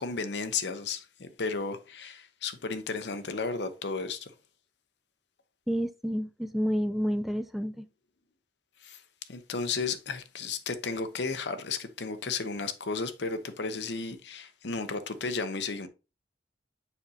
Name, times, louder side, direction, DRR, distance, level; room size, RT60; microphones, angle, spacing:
voice 1, 0.0-4.3 8.8-9.0 9.3-15.9, left 4 dB, 75° left, 0.8 m, -33 dB
voice 2, 5.7-7.9, equal, ahead, 0.3 m, -29 dB
7.1 x 5.3 x 2.8 m
head